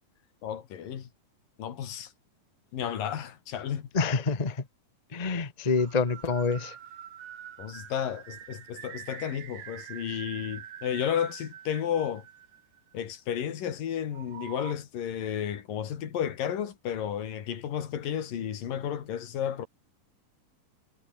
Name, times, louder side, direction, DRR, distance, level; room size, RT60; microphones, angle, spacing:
voice 1, 0.4-1.1 1.6-2.1 2.7-3.9 7.6-12.3 12.9-19.7, left 9 dB, 85° left, 4.0 m, -32 dB
voice 2, 3.9-4.6 5.1-6.7, left 4 dB, 70° left, 0.3 m, -27 dB
sound 1, 5.8-13.0 14.1-14.7, right 10 dB, 70° right, 3.3 m, -45 dB
omnidirectional pair, 3.9 m